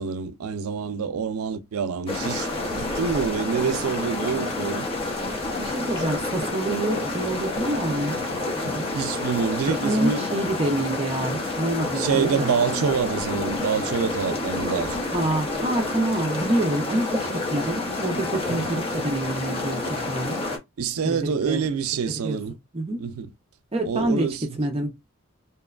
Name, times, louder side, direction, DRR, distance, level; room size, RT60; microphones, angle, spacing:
voice 1, 0.0-4.9 8.9-10.2 11.9-15.0 18.5-18.7 20.8-22.5 23.0-23.3 23.8-24.4, right 6 dB, 90° right, 0.4 m, -26 dB
sound 1, 2.1-20.6, left 2 dB, 25° left, 0.8 m, -29 dB
voice 2, 5.6-8.2 8.6-8.9 9.8-12.5 15.1-20.4 21.0-21.6 22.2-22.4 22.7-23.0 23.7-24.9, right 1 dB, 25° right, 0.5 m, -27 dB
2.8 x 2.2 x 2.3 m
head